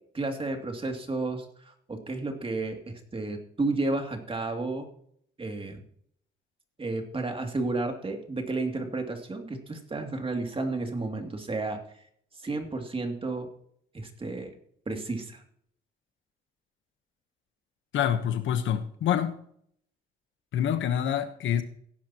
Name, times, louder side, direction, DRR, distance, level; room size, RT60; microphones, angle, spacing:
voice 1, 0.1-4.9 5.4-5.8 6.8-11.8 12.4-13.5 13.9-14.6 14.9-15.4, right 3 dB, 25° right, 2.6 m, -32 dB
voice 2, 17.9-19.4 20.5-21.6, left 9 dB, 75° left, 1.2 m, -26 dB
16.5 x 10.5 x 3.0 m
cardioid pair, 90°, 20 cm